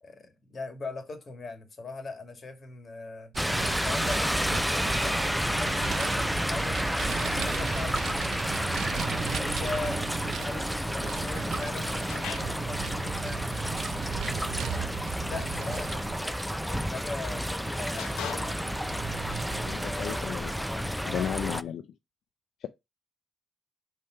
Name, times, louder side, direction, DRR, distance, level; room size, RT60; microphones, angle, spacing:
voice 1, 0.0-3.3 3.8-6.8 7.2-8.4 8.8-13.4 14.0-18.7 19.7-21.7, left 3 dB, 40° left, 2.1 m, -41 dB
Vehicle, 3.3-20.3, right 8 dB, 70° right, 0.5 m, -38 dB
sound 1, 3.4-21.6, equal, ahead, 0.4 m, -30 dB
sound 2, 12.1-12.7 15.0-15.6 16.7-16.9 18.0-18.8, left 9 dB, 90° left, 0.9 m, -40 dB
voice 2, 19.5-21.8 22.6-22.7, left 9 dB, 70° left, 0.4 m, -35 dB
5.7 x 3.3 x 5.6 m
cardioid pair, 90°, 0 cm